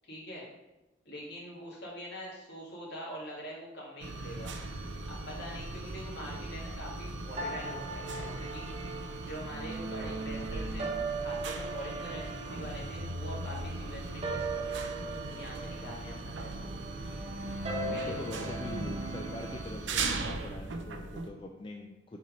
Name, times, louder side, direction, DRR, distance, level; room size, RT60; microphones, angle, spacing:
voice 1, 0.0-0.5 1.0-4.5 5.1-10.9 11.2-14.9 15.3-16.7 17.9-18.5 19.3-19.4, equal, 55° left, -4 dB, 2.4 m, -44 dB
sound 1, 4.0-21.3, right 3 dB, 65° right, 0.6 m, -39 dB
sound 2, 7.4-19.6, right 2 dB, 30° right, 1.1 m, -38 dB
voice 2, 17.9-22.2, left 1 dB, 25° left, 1 dB, 0.4 m, -43 dB
5.7 x 4.5 x 5.3 m, 0.99 s
head